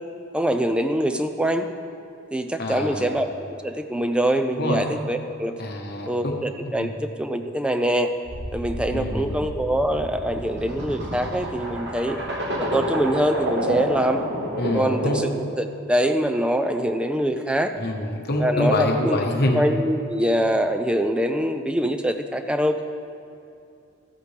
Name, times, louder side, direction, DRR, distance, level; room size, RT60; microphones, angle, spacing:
voice 1, 0.3-1.7 2.3-5.5 6.0-8.1 8.5-12.2 12.6-14.2 14.7-17.7 18.4-19.2 19.5-22.8, equal, 5° right, 7 dB, 0.3 m, -24 dB
voice 2, 2.6-3.1 4.6-4.8 5.6-6.9 8.9-9.4 14.6-15.2 17.8-19.6, left 1 dB, 50° left, 2 dB, 1.0 m, -26 dB
sound 1, 8.2-15.4, right 1 dB, 55° right, 1.5 m, -29 dB
13.5 x 8.3 x 3.3 m, 2.6 s
head